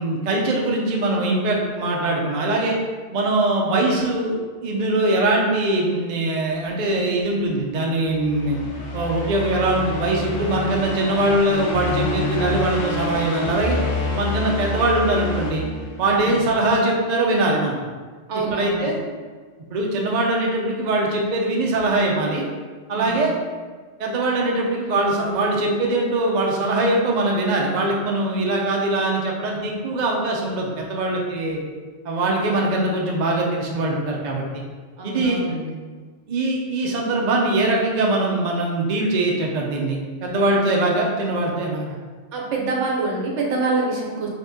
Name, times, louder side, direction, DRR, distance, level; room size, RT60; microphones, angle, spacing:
voice 1, 0.0-2.8 3.1-4.3 4.6-8.6 8.9-13.8 14.2-15.7 16.0-17.8 18.5-19.0 19.7-22.5 22.9-23.3 24.0-31.6 32.0-34.4 35.0-35.4 36.3-42.0, right 2 dB, 55° right, -1 dB, 0.5 m, -22 dB
sound 1, 8.1-16.4, left 2 dB, 60° left, 0.7 m, -28 dB
voice 2, 16.0-16.4 18.3-19.0 22.9-23.3 35.0-35.7 40.4-40.6 42.3-44.3, right 3 dB, 75° right, -1 dB, 0.9 m, -26 dB
2.8 x 2.8 x 3.5 m, 1.5 s
omnidirectional pair, 1.3 m